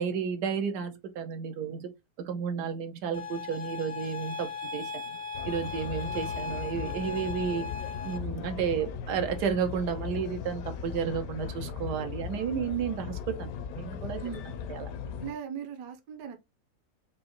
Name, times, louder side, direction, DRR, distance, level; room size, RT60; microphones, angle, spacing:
voice 1, 0.0-1.9 2.2-5.2 5.4-7.7 8.0-14.2 14.7-14.9, right 7 dB, 85° right, 1.3 m, -32 dB
sound 1, 3.1-8.2, left 5 dB, 10° left, 0.4 m, -38 dB
sound 2, 5.3-15.3, left 7 dB, 70° left, 1.0 m, -38 dB
voice 2, 15.2-16.4, right 7 dB, 70° right, 1.2 m, -38 dB
4.9 x 2.5 x 2.9 m
omnidirectional pair, 1.7 m